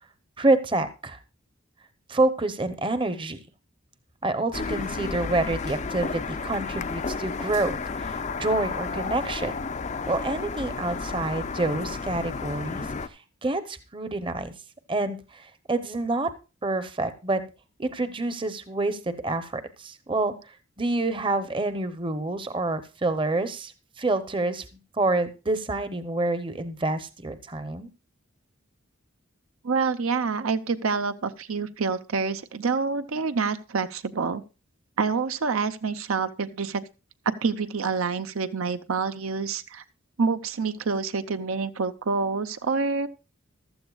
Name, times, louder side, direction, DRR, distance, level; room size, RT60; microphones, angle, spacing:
voice 1, 0.4-1.2 2.1-3.4 4.2-9.5 10.1-14.5 14.9-16.3 16.6-17.4 17.8-23.7 24.0-24.6 25.0-27.9, right 2 dB, 25° right, 11 dB, 0.7 m, -27 dB
sound 1, 4.5-13.1, left 4 dB, 35° left, 0.4 m, -32 dB
voice 2, 29.6-34.4 35.0-36.8 37.3-39.8 40.2-43.1, right 4 dB, 80° right, 10 dB, 0.7 m, -27 dB
15.0 x 12.5 x 2.3 m, 0.30 s
head